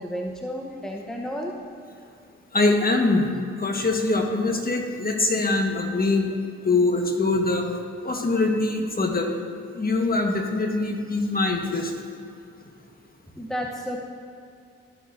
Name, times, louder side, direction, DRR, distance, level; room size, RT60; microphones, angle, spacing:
voice 1, 0.0-1.6 13.3-14.1, equal, ahead, 0 dB, 0.9 m, -32 dB
voice 2, 2.5-3.3 3.6-6.3 6.6-7.7 8.0-9.3 9.7-11.9, left 2 dB, 30° left, 2 dB, 1.4 m, -23 dB
13.0 x 6.8 x 2.7 m, 2.4 s
supercardioid pair, 45°, 29 cm